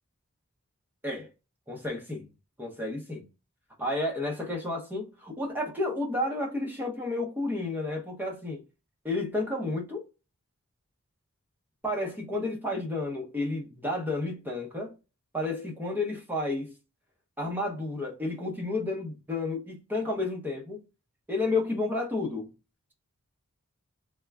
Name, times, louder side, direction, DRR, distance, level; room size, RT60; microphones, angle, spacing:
voice 1, 1.7-2.2 2.6-3.3 3.8-8.6 9.0-10.1 11.8-14.9 15.3-16.7 17.4-20.8 21.3-22.5, left 2 dB, 10° right, 0.8 m, -31 dB
3.5 x 2.2 x 3.4 m
head